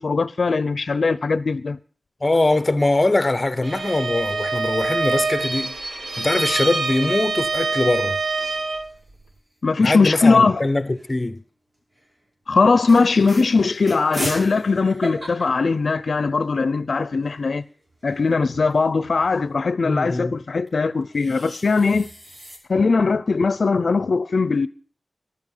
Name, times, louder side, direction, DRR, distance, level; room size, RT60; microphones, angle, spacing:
voice 1, 0.0-1.8 9.6-10.6 12.5-17.6 18.0-22.1 22.7-24.7, left 4 dB, 80° left, 0.6 m, -20 dB
voice 2, 2.2-5.8 6.2-8.2 9.8-11.4 19.8-20.4, left 2 dB, 35° left, 0.9 m, -22 dB
Bowed string instrument, 3.6-8.9, right 3 dB, 80° right, 1.7 m, -25 dB
sound 1, 8.6-9.2 10.1-11.3 11.9-12.1 12.5-12.6 12.8-16.5 16.9-17.0 17.1-19.4 20.7-22.6, right 1 dB, 45° right, 5.6 m, -37 dB
14.0 x 12.0 x 5.5 m
wide cardioid pair, 90°, 0 cm